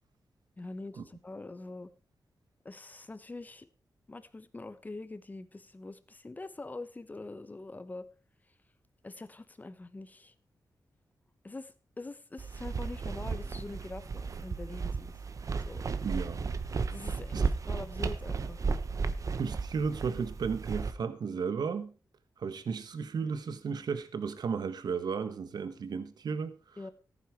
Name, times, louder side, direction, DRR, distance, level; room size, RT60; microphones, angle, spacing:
voice 1, 0.6-1.9 2.6-3.7 4.1-8.1 9.0-10.3 11.4-15.2 15.7-15.8 16.9-18.6 26.8-26.9, left 2 dB, 25° left, 1.1 m, -44 dB
sound 1, 12.4-20.9, right 4 dB, 50° right, 1.0 m, -34 dB
voice 2, 16.0-16.4 17.3-17.4 19.4-21.9 22.4-26.8, right 5 dB, 70° right, 1.3 m, -34 dB
14.5 x 9.7 x 4.7 m
wide cardioid pair, 115°, 7 cm